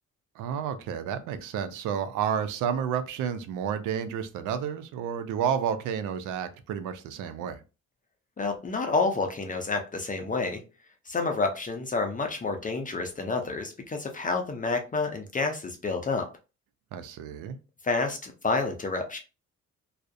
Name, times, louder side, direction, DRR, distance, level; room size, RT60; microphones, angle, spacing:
voice 1, 0.4-7.6 16.9-17.6, right 8 dB, 90° right, 10 dB, 0.5 m, -31 dB
voice 2, 8.4-10.6 11.1-16.3 17.8-19.2, left 3 dB, 25° left, 4 dB, 0.5 m, -29 dB
2.3 x 2.0 x 2.5 m, 0.31 s
cardioid pair, 90°, 30 cm